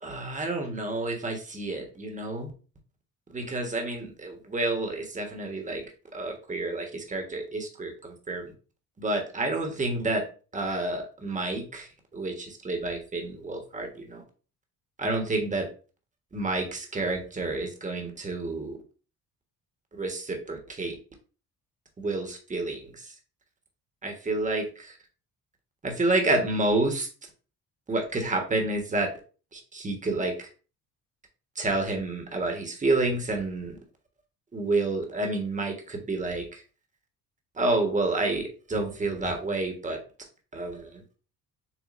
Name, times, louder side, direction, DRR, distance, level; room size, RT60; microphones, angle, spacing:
voice 1, 0.0-2.5 3.3-5.8 6.1-8.5 9.0-10.2 10.5-14.2 15.0-15.7 16.3-18.8 19.9-20.9 22.0-23.1 24.0-25.0 25.8-27.1 27.9-29.1 29.5-30.3 31.6-33.8 34.5-36.6 37.6-40.0 40.5-41.0, right 2 dB, 20° right, 3 dB, 1.3 m, -29 dB
7.3 x 2.5 x 2.5 m, 0.35 s
cardioid pair, 100°, 35 cm